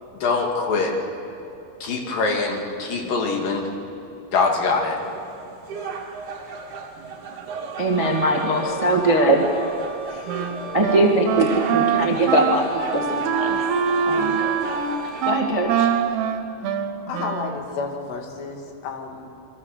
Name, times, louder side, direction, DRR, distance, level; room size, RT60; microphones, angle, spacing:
voice 1, 0.2-1.0 1.8-3.7 4.3-5.0, left 4 dB, 60° left, 1 dB, 4.0 m, -23 dB
sound 1, 5.0-15.3, right 4 dB, 50° right, 3.2 m, -35 dB
voice 2, 7.8-9.5 10.1-10.3 10.7-13.6 14.0-14.4 15.2-15.9, right 1 dB, 15° right, 1 dB, 1.1 m, -21 dB
Wind instrument woodwind instrument, 7.9-16.2, left 3 dB, 40° left, 4.0 m, -41 dB
Wind instrument woodwind instrument 2, 10.3-17.7, right 7 dB, 85° right, 3.1 m, -24 dB
voice 3, 17.1-19.3, left 4 dB, 90° left, 3 dB, 4.3 m, -31 dB
28.5 x 23.5 x 6.7 m, 2.9 s
omnidirectional pair, 4.7 m